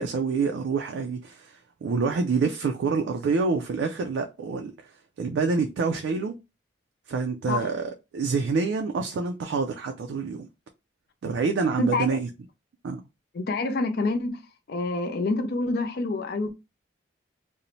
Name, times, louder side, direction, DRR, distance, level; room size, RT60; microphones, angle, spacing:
voice 1, 0.0-4.7 5.2-6.3 7.1-10.5 11.2-12.3 12.8-13.0, right 4 dB, 70° right, 0.3 m, -27 dB
voice 2, 11.8-12.2 13.3-14.4 14.7-16.5, left 2 dB, 55° left, 0.4 m, -27 dB
2.6 x 2.0 x 2.9 m
head